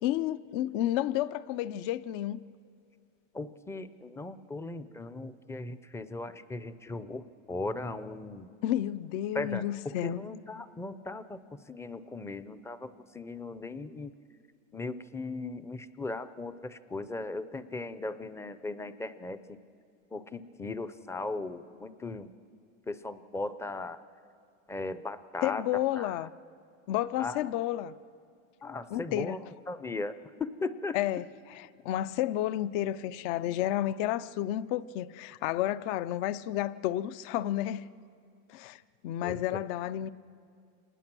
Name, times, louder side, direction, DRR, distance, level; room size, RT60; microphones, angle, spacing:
voice 1, 0.0-2.4 8.6-10.2 25.4-26.3 26.9-27.9 28.9-29.4 30.9-37.8 38.5-40.1, left 13 dB, 60° left, 0.7 m, -31 dB
voice 2, 3.3-8.5 9.3-11.4 11.7-14.1 14.7-19.6 20.1-22.3 22.9-24.0 24.7-25.6 25.9-26.2 27.2-27.4 28.6-29.4 29.7-30.1 30.4-31.0 39.2-39.6, left 3 dB, 5° left, 0.4 m, -38 dB
26.0 x 20.0 x 6.1 m
supercardioid pair, 125°, 42 cm